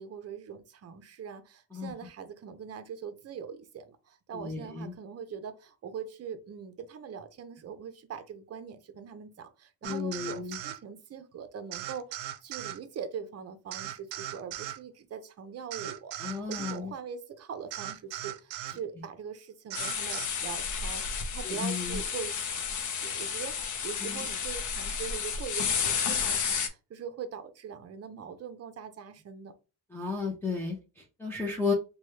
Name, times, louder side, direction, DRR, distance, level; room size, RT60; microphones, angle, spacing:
voice 1, 0.0-29.5, right 7 dB, 35° right, 0.6 m, -42 dB
voice 2, 4.3-4.9 9.8-10.6 16.2-16.9 21.4-22.0 24.0-24.3 29.9-31.7, left 4 dB, 5° left, 0.6 m, -33 dB
sound 1, 9.8-10.8 11.7-12.8 13.7-14.8 15.7-16.8 17.7-18.8 19.7-20.3, right 13 dB, 90° right, 0.5 m, -38 dB
sound 2, 19.7-26.7, left 6 dB, 45° left, 0.6 m, -32 dB
3.0 x 2.3 x 3.2 m
cardioid pair, 115°, 42 cm